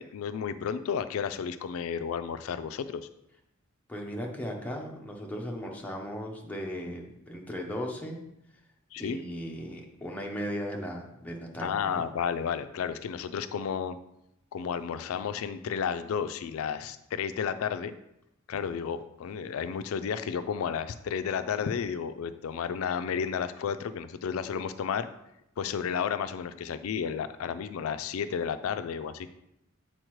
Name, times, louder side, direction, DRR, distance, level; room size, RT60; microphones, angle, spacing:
voice 1, 0.0-3.1 8.9-9.2 11.6-14.0 14.5-17.9 18.5-25.1 25.6-29.3, left 7 dB, 85° left, 11 dB, 0.3 m, -32 dB
voice 2, 3.9-8.2 9.0-12.0, equal, 5° left, 0 dB, 0.8 m, -37 dB
7.9 x 4.2 x 3.1 m, 0.84 s
head